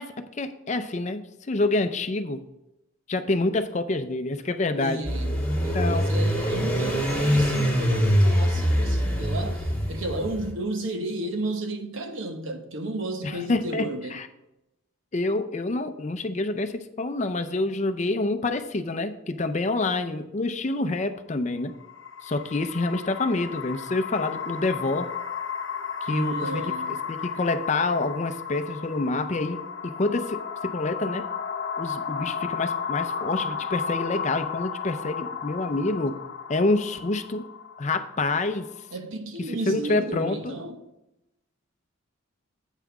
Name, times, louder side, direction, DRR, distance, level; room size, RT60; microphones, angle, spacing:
voice 1, 0.0-2.4 3.1-5.0 5.7-6.1 13.2-14.3 15.1-21.7 22.2-25.1 26.0-31.3 31.8-36.2 36.5-37.5 37.8-38.7 39.7-40.5, left 2 dB, 35° left, 0.5 m, -27 dB
voice 2, 4.8-14.2 26.1-27.0 38.9-40.8, right 2 dB, 70° right, 1.0 m, -33 dB
sound 1, 5.1-10.5, equal, 10° left, 1.8 m, -24 dB
sound 2, 21.7-38.9, left 6 dB, 65° left, 0.9 m, -34 dB
8.2 x 5.7 x 4.7 m
head